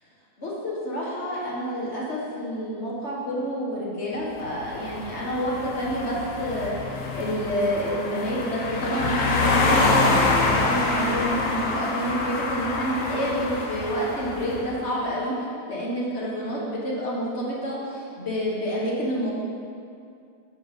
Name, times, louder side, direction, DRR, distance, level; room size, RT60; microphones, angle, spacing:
voice 1, 0.4-15.3 15.7-19.3, equal, 45° left, -5 dB, 1.6 m, -28 dB
sound 1, 4.4-14.7, left 3 dB, 60° left, 1.1 m, -26 dB
7.1 x 5.4 x 5.2 m, 2.4 s
omnidirectional pair, 1.8 m